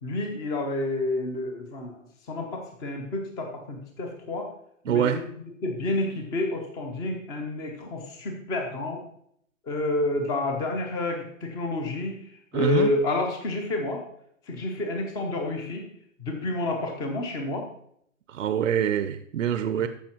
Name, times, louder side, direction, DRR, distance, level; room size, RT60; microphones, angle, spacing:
voice 1, 0.0-4.5 4.9-5.2 5.6-9.0 9.7-12.2 12.5-14.0 14.5-15.9 16.2-17.6 19.8-19.9, left 2 dB, 10° left, 0.7 m, -29 dB
voice 2, 4.9-5.2 12.5-12.9 18.3-19.9, right 9 dB, 70° right, 0.8 m, -25 dB
14.0 x 5.6 x 4.4 m
hypercardioid pair, 165°, 39 cm